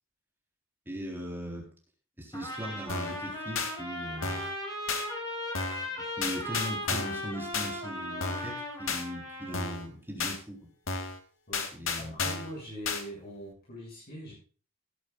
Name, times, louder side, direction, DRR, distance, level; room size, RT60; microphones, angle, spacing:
voice 1, 0.9-1.7 2.2-4.5 5.8-10.7 11.8-12.2, equal, 10° right, -1 dB, 3.9 m, -39 dB
Trumpet, 2.3-9.7, left 1 dB, 20° left, 6.3 m, -37 dB
sound 1, 2.9-3.2 3.6-3.7 4.2-4.5 4.9-5.0 5.5-5.9 6.2-7.2 7.5-7.7 8.2-8.5 8.9-9.0 9.5-9.9 10.2-10.4 10.9-11.2 11.5-12.5 12.9-13.0, left 4 dB, 70° left, 2.5 m, -32 dB
voice 2, 12.0-14.3, equal, 50° left, -5 dB, 7.2 m, -42 dB
17.5 x 11.0 x 2.5 m, 0.37 s
head